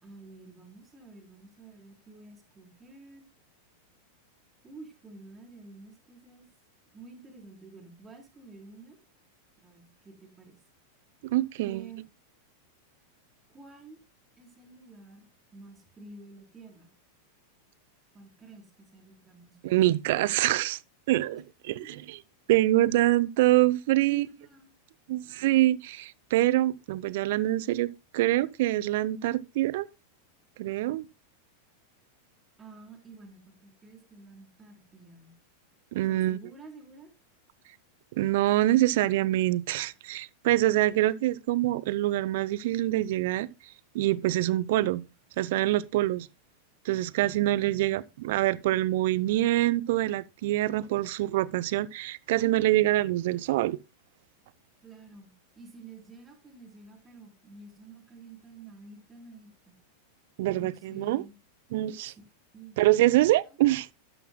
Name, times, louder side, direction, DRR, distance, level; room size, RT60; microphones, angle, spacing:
voice 1, 0.0-3.3 4.6-6.5 6.9-9.0 9.6-10.6 11.6-12.0 13.5-14.0 14.4-16.9 18.1-20.2 21.8-22.0 24.0-24.7 32.6-35.3 36.1-37.1 54.8-59.8 60.4-61.3 62.0-62.2 62.5-62.8 63.1-63.6, right 3 dB, 20° right, 3.7 m, -50 dB
voice 2, 11.2-11.9 19.6-20.8 21.1-21.4 21.9-22.2 22.5-24.3 25.1-29.9 30.6-31.1 35.9-36.4 38.1-43.5 43.9-45.0 45.4-46.3 46.8-53.8 60.4-61.2 61.7-62.1 62.8-63.9, right 16 dB, 50° right, 0.5 m, -25 dB
12.0 x 11.5 x 2.2 m
figure-of-eight pair, 90°, 0 cm